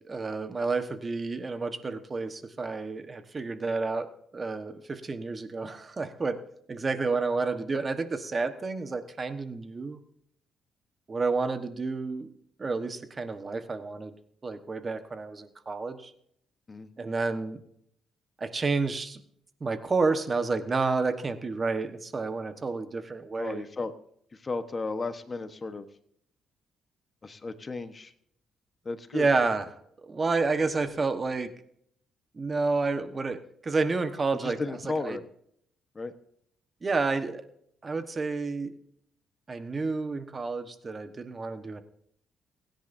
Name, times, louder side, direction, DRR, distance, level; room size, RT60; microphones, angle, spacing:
voice 1, 0.1-4.1 4.3-6.4 6.7-10.0 11.1-12.3 12.6-14.1 14.4-16.1 17.0-17.6 18.4-19.2 19.6-23.6 29.1-29.6 30.0-31.5 32.3-34.6 35.0-35.2 36.8-37.4 37.8-38.7 39.5-41.8, right 3 dB, 30° right, 9 dB, 1.2 m, -30 dB
voice 2, 23.4-23.9 24.3-25.9 27.2-28.1 28.8-29.3 34.4-35.2 35.9-36.1, left 3 dB, 30° left, 10 dB, 1.1 m, -34 dB
29.0 x 10.5 x 2.7 m, 0.69 s
cardioid pair, 90°, 0 cm